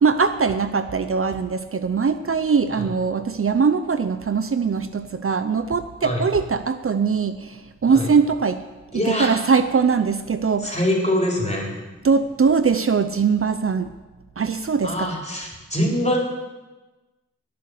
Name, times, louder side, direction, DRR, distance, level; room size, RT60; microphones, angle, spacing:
voice 1, 0.0-8.6 9.1-10.8 12.0-13.9 14.4-15.1, right 5 dB, 50° right, 10 dB, 0.7 m, -21 dB
voice 2, 8.9-9.3 10.6-11.8 14.8-16.2, left 1 dB, 25° left, -2 dB, 4.1 m, -24 dB
19.5 x 6.8 x 6.6 m, 1.2 s
cardioid pair, 60°, 29 cm